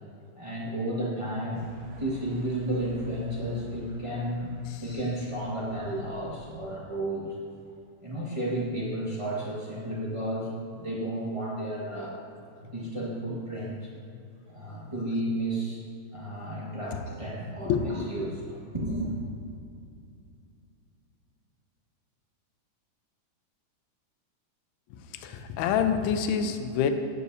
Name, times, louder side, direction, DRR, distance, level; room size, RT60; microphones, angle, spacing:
voice 1, 0.3-1.6 2.0-7.4 8.0-12.2 12.7-13.9 14.5-15.8 16.1-19.2, right 1 dB, 35° right, -6 dB, 0.5 m, -32 dB
sound 1, 1.5-6.6, left 1 dB, 65° right, 2.1 m, -47 dB
voice 2, 17.6-18.1 24.9-26.9, left 7 dB, 75° left, 7 dB, 1.9 m, -27 dB
13.5 x 9.4 x 2.7 m, 2.4 s
omnidirectional pair, 3.5 m